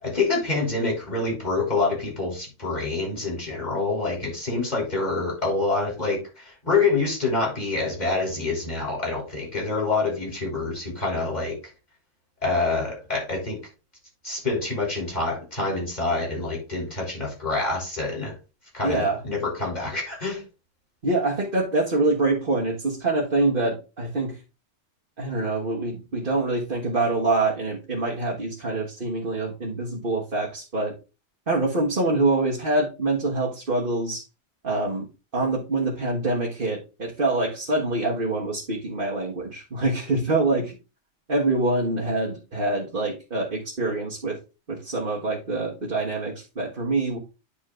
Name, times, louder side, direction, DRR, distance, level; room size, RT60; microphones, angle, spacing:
voice 1, 0.0-11.6 12.4-13.6 14.2-18.3 18.7-20.4, left 3 dB, 35° left, -1 dB, 3.5 m, -26 dB
voice 2, 18.8-19.2 21.0-24.4 25.2-30.9 31.5-34.2 34.6-40.8 41.3-44.4 44.7-47.2, right 2 dB, 45° right, -3 dB, 1.7 m, -25 dB
10.0 x 4.2 x 3.7 m, 0.29 s
omnidirectional pair, 1.3 m